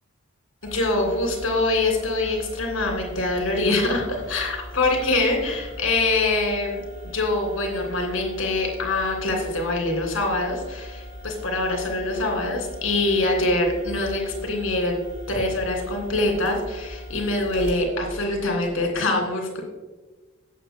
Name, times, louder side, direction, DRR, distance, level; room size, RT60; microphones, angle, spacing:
voice 1, 0.6-4.0 4.3-6.8 7.1-15.0 15.3-19.6, left 2 dB, 90° left, 1 dB, 2.8 m, -24 dB
sound 1, 0.6-18.9, left 1 dB, 45° right, 2.9 m, -39 dB
16.0 x 8.1 x 2.2 m, 1.3 s
head